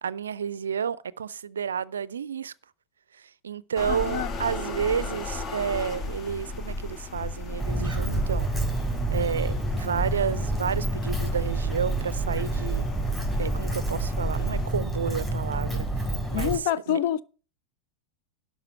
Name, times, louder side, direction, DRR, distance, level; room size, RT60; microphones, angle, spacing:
voice 1, 0.0-2.5 3.4-8.5 9.1-12.9 13.4-15.9 16.3-17.0, right 7 dB, 70° right, 0.5 m, -31 dB
sound 1, 3.8-14.7, left 2 dB, 30° left, 1.1 m, -34 dB
voice 2, 3.9-4.3 16.3-17.2, left 10 dB, 50° left, 0.6 m, -27 dB
Walk footsteps, 7.6-16.6, right 2 dB, 10° left, 3.8 m, -29 dB
11.5 x 4.9 x 7.9 m
figure-of-eight pair, 90°, 0 cm